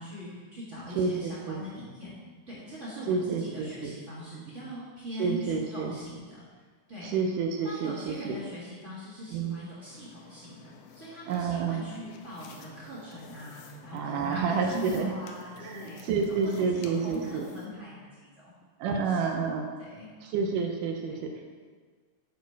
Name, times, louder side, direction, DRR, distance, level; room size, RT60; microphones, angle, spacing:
voice 1, 0.0-2.1 2.5-6.4 6.9-7.1 7.6-16.1 16.6-18.5 18.8-19.2 19.8-20.1 21.2-21.3, equal, 30° right, -8 dB, 1.5 m, -41 dB
voice 2, 1.0-1.6 3.1-4.0 5.2-6.0 7.0-8.4 9.3-9.6 11.3-11.9 13.9-15.1 15.6-17.5 18.8-19.7 20.2-21.5, right 5 dB, 75° right, 3 dB, 2.0 m, -29 dB
sound 1, 9.9-17.7, left 6 dB, 80° left, 2.2 m, -52 dB
10.5 x 4.4 x 4.5 m, 1.5 s
omnidirectional pair, 4.3 m